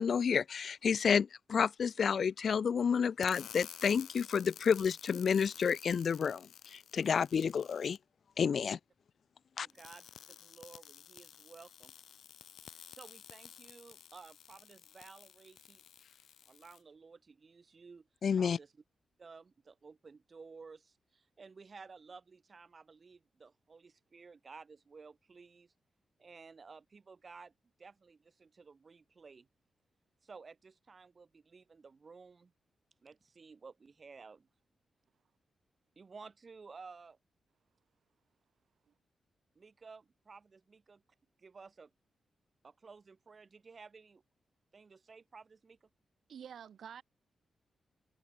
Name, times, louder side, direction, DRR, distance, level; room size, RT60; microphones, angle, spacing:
voice 1, 0.0-6.4 6.7-8.0 8.4-8.8 9.6-9.7 18.2-18.6, left 6 dB, 50° left, 0.4 m, -30 dB
sound 1, 3.2-8.0 9.7-16.8, left 9 dB, 75° left, 2.0 m, -53 dB
voice 2, 9.6-11.9 12.7-15.8 16.5-18.1 18.4-18.8 19.2-25.7 26.2-27.5 27.8-29.5 30.2-32.5 33.0-34.5 36.0-37.2 39.6-41.0 41.4-41.9 42.6-44.2 44.7-45.9, right 4 dB, 30° right, 4.1 m, -54 dB
voice 3, 46.3-47.0, right 8 dB, 65° right, 2.9 m, -48 dB
wide cardioid pair, 175°, 0 cm